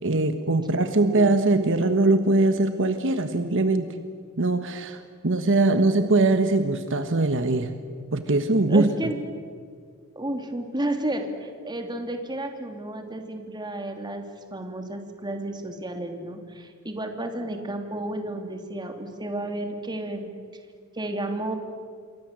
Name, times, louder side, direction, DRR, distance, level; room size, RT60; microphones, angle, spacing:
voice 1, 0.0-3.9 4.4-7.7 8.1-9.1, right 2 dB, 60° right, 8 dB, 1.4 m, -22 dB
voice 2, 8.7-9.2 10.1-14.3 14.5-20.3 20.9-21.5, right 1 dB, 20° right, 4 dB, 3.0 m, -32 dB
28.0 x 24.0 x 7.7 m, 2.1 s
head